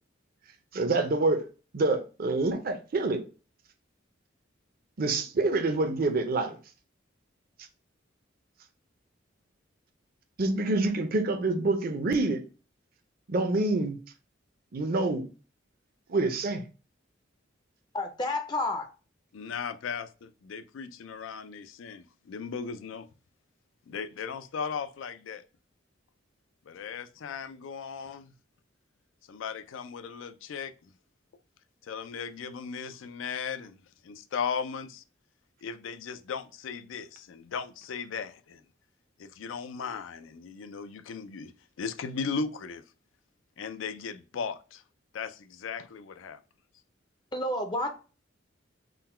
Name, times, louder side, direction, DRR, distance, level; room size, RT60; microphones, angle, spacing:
voice 1, 0.7-1.5 1.7-3.2 5.0-6.6 10.4-12.4 13.3-14.0 14.7-15.3 16.1-16.6, right 2 dB, 50° right, 0.5 m, -26 dB
voice 2, 17.9-18.9 47.3-47.9, left 1 dB, 20° left, 0.5 m, -30 dB
voice 3, 19.3-23.1 23.9-25.4 26.7-28.3 29.3-30.9 31.8-33.7 34.0-35.0 35.6-38.6 39.2-41.5 41.8-42.8 43.6-44.8 45.1-46.4, left 6 dB, 80° left, 0.4 m, -37 dB
3.8 x 2.1 x 4.2 m
head